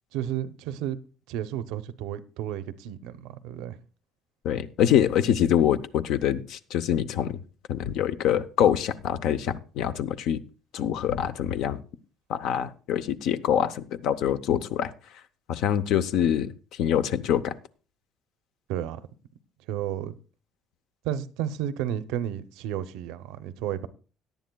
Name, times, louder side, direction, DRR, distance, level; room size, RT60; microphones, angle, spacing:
voice 1, 0.1-1.0 1.3-3.8 18.7-19.0 19.7-20.1 21.0-23.9, right 11 dB, 90° right, 0.7 m, -32 dB
voice 2, 4.4-7.4 7.7-10.4 10.7-11.8 12.3-14.9 15.5-16.5 16.8-17.5, left 10 dB, 75° left, 0.7 m, -25 dB
17.5 x 10.5 x 2.3 m
cardioid pair, 120°, 0 cm